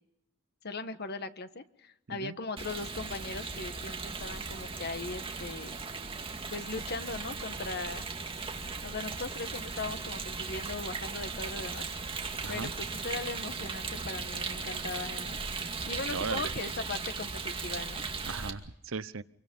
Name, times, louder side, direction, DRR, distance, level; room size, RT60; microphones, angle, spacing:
voice 1, 0.6-5.8 6.5-8.0 8.8-11.8 12.5-15.4 15.9-18.0, left 3 dB, 55° left, 10 dB, 1.4 m, -39 dB
Rain, 2.6-18.5, right 4 dB, 25° right, 2.4 m, -37 dB
voice 2, 16.1-16.5 18.2-19.2, right 5 dB, 70° right, 16 dB, 0.8 m, -37 dB
28.0 x 24.0 x 5.4 m, 0.85 s
head